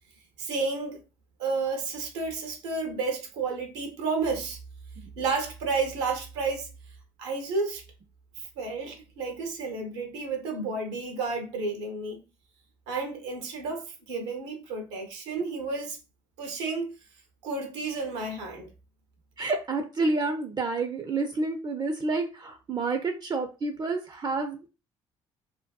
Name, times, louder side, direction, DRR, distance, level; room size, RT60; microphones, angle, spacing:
voice 1, 0.4-1.0 1.4-4.6 5.2-6.7 7.2-7.8 8.4-12.2 12.9-16.0 16.4-16.9 17.4-18.7, right 4 dB, 80° right, 0.6 m, -31 dB
voice 2, 19.4-24.7, right 3 dB, 30° right, 0.4 m, -29 dB
2.5 x 2.2 x 2.3 m
hypercardioid pair, 50°, 14 cm